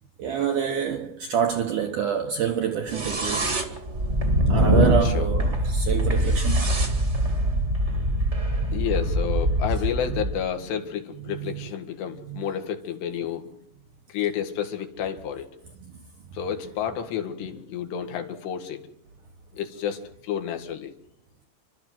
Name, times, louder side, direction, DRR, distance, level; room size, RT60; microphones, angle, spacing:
voice 1, 0.2-3.6 4.5-6.6 10.1-10.2 11.3-11.7 12.2-12.4, right 8 dB, 70° right, 2.0 m, -27 dB
sound 1, 2.9-10.4, right 1 dB, 30° right, 1.4 m, -23 dB
voice 2, 8.7-13.5 14.1-15.5 16.3-18.8 19.5-20.9, left 8 dB, 75° left, 3.9 m, -30 dB
29.0 x 12.5 x 7.7 m
omnidirectional pair, 5.0 m